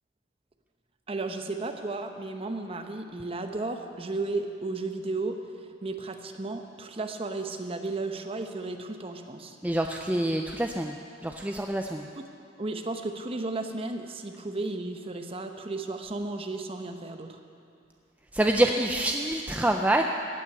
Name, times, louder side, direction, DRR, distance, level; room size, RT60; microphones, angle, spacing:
voice 1, 1.1-9.6 12.2-12.3 12.6-17.4, right 2 dB, 30° right, 6 dB, 0.8 m, -34 dB
voice 2, 9.6-10.9 11.2-12.0 18.3-20.0, right 1 dB, 10° right, 3 dB, 0.4 m, -26 dB
15.0 x 6.0 x 9.3 m, 2.4 s
head